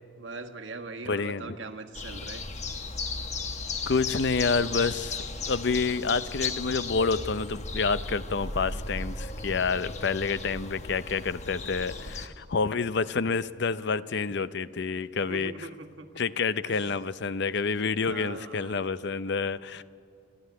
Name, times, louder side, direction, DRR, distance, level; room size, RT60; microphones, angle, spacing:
voice 1, 0.2-2.5 15.1-16.2 16.6-16.9 18.1-18.8, right 3 dB, 75° right, 6 dB, 1.4 m, -41 dB
voice 2, 1.1-1.6 3.9-15.7 16.2-19.8, left 4 dB, 60° left, 15 dB, 0.6 m, -28 dB
sound 1, 1.9-12.3, left 3 dB, 35° left, 1.2 m, -35 dB
28.5 x 12.0 x 9.3 m, 2.4 s
head